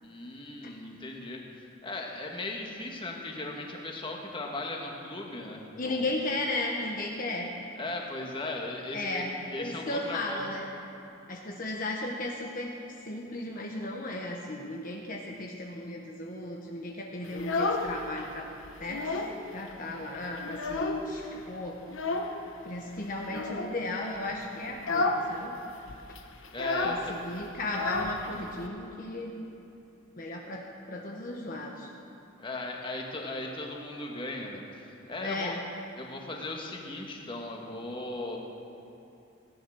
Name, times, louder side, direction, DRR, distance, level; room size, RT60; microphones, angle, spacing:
voice 1, 0.0-6.1 7.7-9.2 9.5-10.5 26.5-27.1 32.4-35.5 36.0-38.4, left 2 dB, 25° left, 0 dB, 1.5 m, -38 dB
voice 2, 5.8-7.5 8.9-10.7 11.3-12.7 13.0-18.5 18.8-19.2 19.5-21.8 22.6-25.6 26.8-29.4 30.1-30.6 30.9-31.9 35.2-35.6, left 2 dB, 45° left, -1 dB, 1.1 m, -35 dB
Child speech kid speaking, 17.2-18.3 18.6-19.4 19.7-19.8 20.1-21.2 21.9-22.4 23.2-23.7 24.2-24.4 24.7-25.3 25.5-25.6 25.9-28.7, left 3 dB, 85° left, 1.1 m, -31 dB
16.0 x 10.5 x 6.3 m, 2.8 s
head